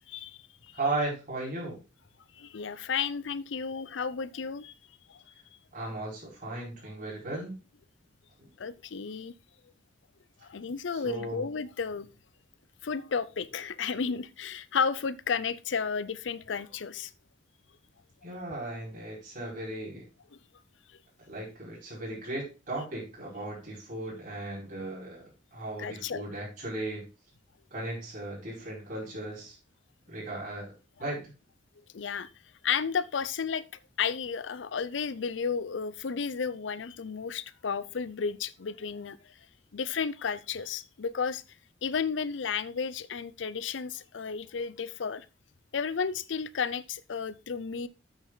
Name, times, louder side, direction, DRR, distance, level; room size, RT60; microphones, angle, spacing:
voice 1, 0.1-0.7 2.4-4.7 5.1-5.2 8.6-9.3 10.5-12.1 12.8-17.1 25.8-26.2 31.9-32.3 32.6-33.6 34.0-39.2 39.7-41.4 41.8-45.2 45.7-47.9, left 6 dB, 90° left, 0.5 m, -32 dB
voice 2, 0.7-1.8 5.7-7.5 8.4-8.5 10.9-11.4 18.2-20.0 21.3-27.0 27.7-29.5 30.1-30.7 31.0-31.3, right 2 dB, 45° right, 4.8 m, -36 dB
8.3 x 6.5 x 3.9 m
head